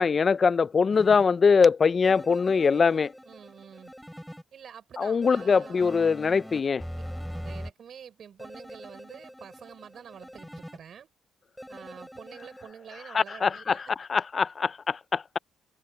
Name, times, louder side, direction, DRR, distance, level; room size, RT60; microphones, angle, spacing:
voice 1, 0.0-3.1 5.0-6.8 13.1-13.8 14.1-15.4, left 5 dB, 35° left, 0.5 m, -22 dB
sound 1, 0.9-1.2 2.0-4.4 5.2-7.7 8.4-10.8 11.6-12.7, equal, ahead, 6.5 m, -42 dB
voice 2, 3.2-3.9 4.5-6.2 7.4-11.1 11.7-13.9, right 8 dB, 55° right, 5.6 m, -47 dB
cardioid pair, 95°, 0 cm